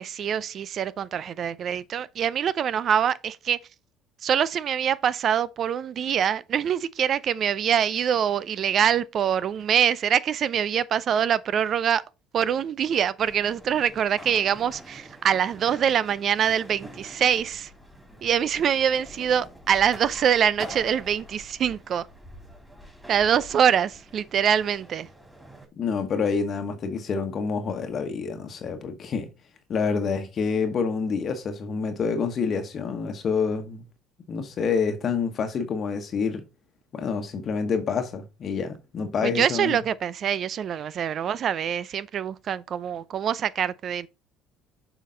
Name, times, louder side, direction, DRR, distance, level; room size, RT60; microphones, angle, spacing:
voice 1, 0.0-3.6 4.2-12.0 12.3-17.7 18.2-22.1 23.1-25.1 39.2-44.1, right 8 dB, 50° right, 0.5 m, -24 dB
sound 1, 13.2-25.7, equal, 5° right, 3.1 m, -45 dB
voice 2, 25.8-29.3 29.7-33.8 34.3-36.4 36.9-39.8, left 5 dB, 45° left, 1.2 m, -27 dB
7.5 x 5.0 x 3.8 m
hypercardioid pair, 65°, 0 cm